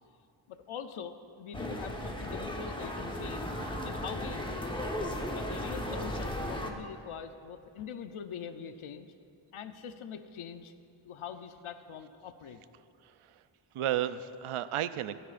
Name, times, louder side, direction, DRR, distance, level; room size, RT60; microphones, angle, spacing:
voice 1, 0.5-4.7 5.3-9.1 9.5-10.7 11.0-12.6, left 7 dB, 85° left, 8 dB, 0.7 m, -43 dB
sound 1, 1.5-6.7, left 1 dB, 10° left, 1.1 m, -36 dB
voice 2, 13.0-13.4 13.7-15.2, right 11 dB, 90° right, 13 dB, 0.6 m, -33 dB
27.0 x 9.9 x 2.5 m, 2.6 s
wide cardioid pair, 100°, 49 cm